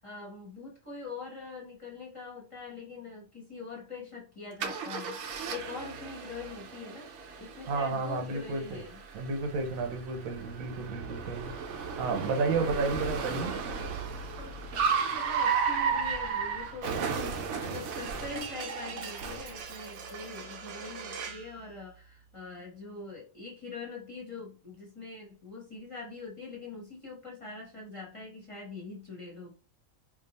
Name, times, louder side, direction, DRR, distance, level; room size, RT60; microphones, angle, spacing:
voice 1, 0.0-7.1 7.4-9.0 14.4-29.5, left 4 dB, 25° left, 1.0 m, -43 dB
Car, 4.6-21.5, right 6 dB, 65° right, 0.9 m, -34 dB
voice 2, 7.7-8.8 9.1-11.5 12.0-13.6, right 4 dB, 85° right, 1.2 m, -32 dB
2.7 x 2.4 x 4.0 m
omnidirectional pair, 1.4 m